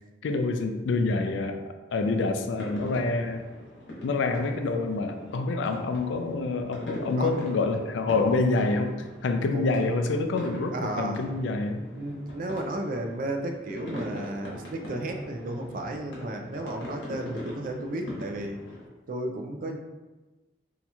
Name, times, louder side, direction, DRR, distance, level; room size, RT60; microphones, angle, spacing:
voice 1, 0.2-1.6 1.9-3.4 4.0-8.9 9.2-11.9, left 3 dB, 90° left, 6 dB, 0.4 m, -27 dB
sound 1, 2.5-18.9, equal, 75° left, 1.0 m, -42 dB
voice 2, 10.7-11.2 11.9-18.6 19.1-19.8, right 1 dB, 50° right, 4 dB, 0.4 m, -33 dB
2.8 x 2.3 x 4.1 m, 1.2 s
head